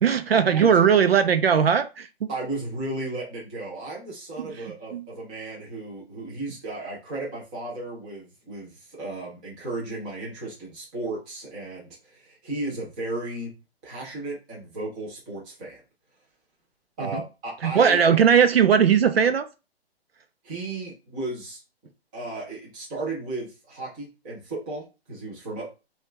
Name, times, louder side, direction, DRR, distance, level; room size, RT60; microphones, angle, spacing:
voice 1, 0.0-2.3 4.4-4.5 4.9-5.0 17.1-17.2 17.6-19.5, right 7 dB, 70° right, 0.7 m, -19 dB
voice 2, 2.3-13.6 13.8-15.8 17.0-18.2 20.4-21.6 22.1-25.7, right 2 dB, 10° right, 0.6 m, -34 dB
5.4 x 2.5 x 3.3 m
hypercardioid pair, 170°, 32 cm